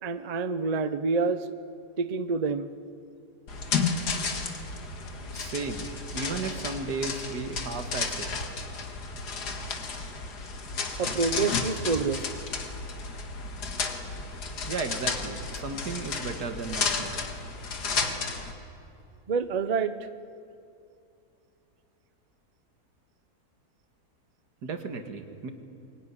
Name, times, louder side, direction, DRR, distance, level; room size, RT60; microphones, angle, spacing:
voice 1, 0.0-1.5 2.0-2.7 5.2-5.3 11.0-12.3 19.3-20.0, right 4 dB, 40° right, 11 dB, 0.6 m, -27 dB
sound 1, 3.5-18.5, left 4 dB, 90° left, 2.2 m, -32 dB
voice 2, 5.3-8.3 14.7-17.2 24.6-25.5, right 4 dB, 85° right, 6 dB, 2.2 m, -34 dB
22.5 x 19.0 x 9.8 m, 2.6 s
omnidirectional pair, 1.7 m